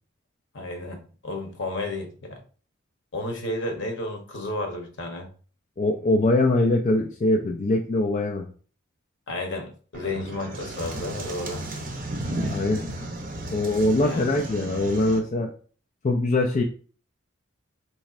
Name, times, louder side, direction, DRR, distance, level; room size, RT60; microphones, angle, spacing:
voice 1, 0.5-2.4 3.1-5.3 9.3-11.6 14.0-14.3, left 2 dB, 60° left, 3 dB, 0.9 m, -32 dB
voice 2, 5.8-8.5 12.5-12.8 13.5-15.5 16.0-16.6, left 2 dB, 35° left, 1 dB, 0.3 m, -22 dB
sound 1, 9.9-15.2, right 1 dB, 40° right, 0.6 m, -34 dB
4.2 x 3.1 x 2.4 m, 0.40 s
head